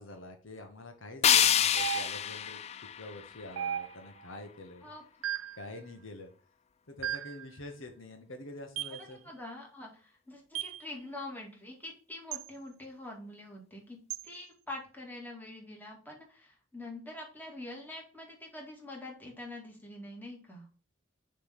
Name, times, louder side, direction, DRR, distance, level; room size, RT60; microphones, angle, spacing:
voice 1, 0.0-2.6 3.0-4.9 5.6-6.3 6.9-9.2, left 1 dB, 70° left, 5 dB, 1.1 m, -46 dB
sound 1, 1.2-4.2, left 9 dB, 30° left, 0.3 m, -28 dB
sound 2, 1.8-2.4 3.6-4.2 5.2-5.7 7.0-7.4 8.8-9.0 10.5-10.8 12.3-12.5 14.1-14.3, right 10 dB, 85° right, 0.4 m, -36 dB
voice 2, 9.2-14.0 14.2-20.6, left 2 dB, 10° left, -1 dB, 2.1 m, -45 dB
6.7 x 3.3 x 5.8 m, 0.39 s
head